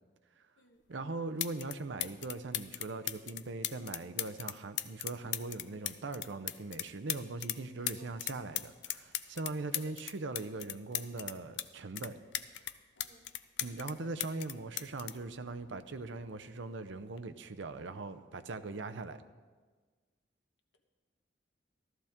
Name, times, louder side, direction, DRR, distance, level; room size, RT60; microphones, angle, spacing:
sound 1, 0.9-1.0 1.4-1.7 2.0-7.6 7.9-11.7 12.0-13.9 14.2-16.0 17.0-17.2, left 13 dB, 65° left, 0.5 m, -38 dB
voice 1, 0.9-12.2 13.6-19.2, right 3 dB, 70° right, 9 dB, 0.6 m, -40 dB
voice 2, 7.8-8.1 9.7-9.9 13.0-13.3 14.0-14.1, left 2 dB, 85° left, 4 dB, 1.3 m, -57 dB
14.5 x 13.0 x 3.6 m, 1.4 s
head